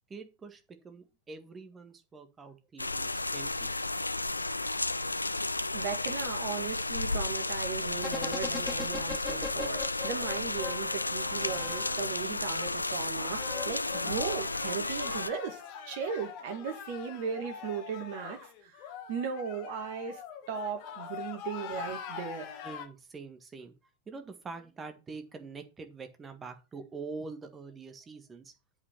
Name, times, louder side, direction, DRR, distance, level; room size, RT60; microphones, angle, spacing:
voice 1, 0.1-3.7 22.6-23.7 24.1-28.5, right 4 dB, 20° right, 1.7 m, -45 dB
sound 1, 2.8-15.3, left 2 dB, 80° left, 0.4 m, -33 dB
voice 2, 5.7-20.2 20.5-22.5, right 6 dB, 50° right, 2.3 m, -37 dB
sound 2, 8.0-12.4 13.2-15.1 15.4-15.5, left 4 dB, 15° left, 0.7 m, -41 dB
sound 3, 12.5-22.9, left 8 dB, 45° left, 1.5 m, -44 dB
8.2 x 5.3 x 6.0 m
figure-of-eight pair, 90°, 0 cm